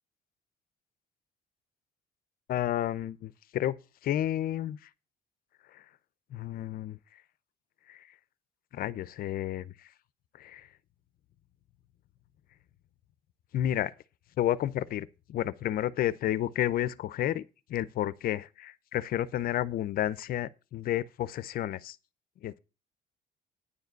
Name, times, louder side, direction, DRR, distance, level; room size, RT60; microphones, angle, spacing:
voice 1, 2.5-3.8 4.0-4.8 5.7-5.8 6.3-7.0 7.9-8.1 8.7-9.7 10.4-10.7 13.5-13.9 14.4-17.4 17.7-22.0 22.4-22.6, left 12 dB, 60° left, 0.6 m, -31 dB
9.8 x 4.9 x 8.0 m
cardioid pair, 110°, 17 cm